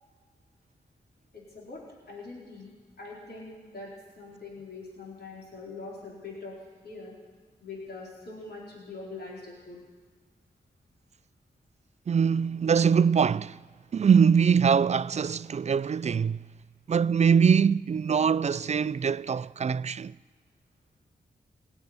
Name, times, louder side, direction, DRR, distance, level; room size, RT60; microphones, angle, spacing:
voice 1, 1.3-2.7 3.0-3.9 4.2-6.5 6.8-7.1 7.6-9.8, left 3 dB, 65° left, 4.5 m, -43 dB
voice 2, 12.1-13.6 13.9-16.5 16.9-20.1, right 6 dB, 40° right, 0.3 m, -23 dB
17.0 x 8.1 x 9.4 m
cardioid pair, 45°, 18 cm